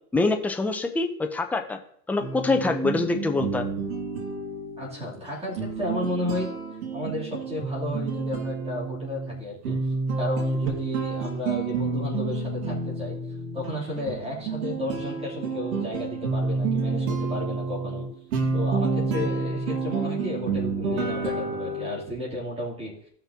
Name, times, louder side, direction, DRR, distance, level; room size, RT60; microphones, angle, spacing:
voice 1, 0.1-1.8 2.1-3.7, left 3 dB, 5° left, 5 dB, 0.4 m, -25 dB
sound 1, 2.2-22.0, right 4 dB, 75° right, 2.3 m, -29 dB
voice 2, 4.8-6.5 6.9-13.2 13.5-18.1 18.5-22.9, left 1 dB, 15° right, -5 dB, 2.9 m, -33 dB
17.0 x 5.8 x 2.8 m, 0.66 s
supercardioid pair, 135°, 43 cm